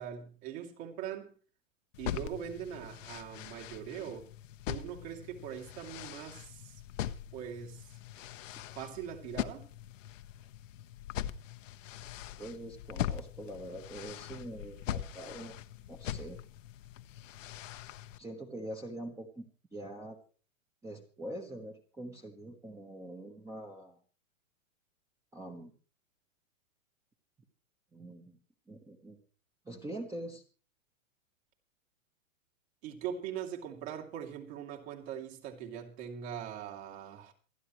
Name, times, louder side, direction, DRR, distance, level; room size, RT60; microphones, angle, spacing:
voice 1, 0.0-1.3 2.0-4.3 4.7-6.8 7.3-8.0 8.7-9.7 32.8-37.3, right 9 dB, 50° right, 3.1 m, -41 dB
sound 1, 1.9-18.2, left 11 dB, 65° left, 1.1 m, -42 dB
voice 2, 12.4-15.5 15.9-16.4 18.2-20.2 20.8-24.0 25.3-25.7 27.9-28.4 28.7-29.2 29.6-30.4, right 1 dB, 5° right, 1.2 m, -44 dB
27.0 x 10.0 x 3.1 m
hypercardioid pair, 135°, 41 cm